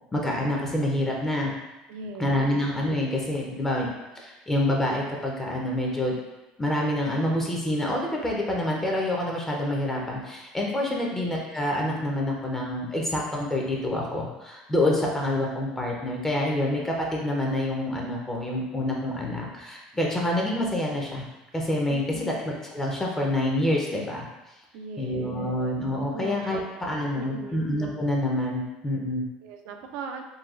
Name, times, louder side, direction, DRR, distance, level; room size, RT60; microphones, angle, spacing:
voice 1, 0.1-1.5 2.2-3.9 4.2-6.2 6.6-21.3 21.5-24.3 25.0-29.3, left 1 dB, 15° left, -2 dB, 0.6 m, -27 dB
voice 2, 1.9-2.6 10.8-11.2 21.9-22.4 24.7-25.5 26.1-26.6 27.1-27.6 29.4-30.2, right 4 dB, 75° right, 5 dB, 0.4 m, -39 dB
3.9 x 2.3 x 2.4 m, 1.0 s
supercardioid pair, 100°, 3 cm